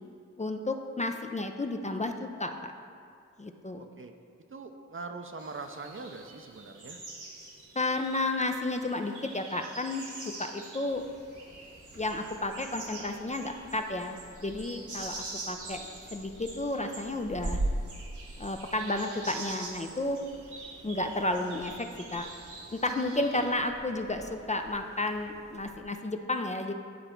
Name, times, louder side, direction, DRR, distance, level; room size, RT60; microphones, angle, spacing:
voice 1, 0.4-2.7 3.4-3.9 7.8-10.1 10.4-11.0 12.0-15.8 16.1-17.6 18.4-20.2 20.8-22.3 22.7-26.7, left 2 dB, 25° left, 5 dB, 0.5 m, -32 dB
voice 2, 4.5-7.0 23.3-23.5, right 3 dB, 45° right, 5 dB, 0.7 m, -42 dB
sound 1, 5.4-23.5, right 3 dB, 90° right, 1.5 m, -46 dB
sound 2, 10.9-25.8, right 1 dB, 20° right, 0.9 m, -42 dB
10.0 x 3.9 x 4.4 m, 2.3 s
cardioid pair, 45°, 30 cm